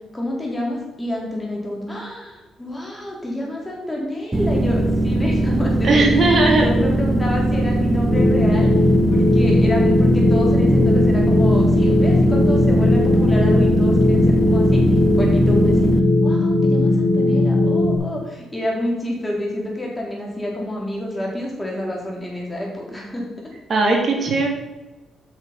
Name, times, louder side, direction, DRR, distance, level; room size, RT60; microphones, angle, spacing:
voice 1, 0.1-6.1 6.4-8.7 9.1-14.8 15.2-15.9 16.2-23.3, left 1 dB, 15° left, -2 dB, 3.7 m, -28 dB
sound 1, 4.3-16.0, right 1 dB, 15° right, 0.7 m, -20 dB
voice 2, 5.8-6.7 23.7-24.5, right 3 dB, 40° right, 0 dB, 3.2 m, -17 dB
sound 2, 8.1-18.0, left 2 dB, 45° left, 3.4 m, -18 dB
8.8 x 6.3 x 5.9 m, 1.1 s
cardioid pair, 90°, 0 cm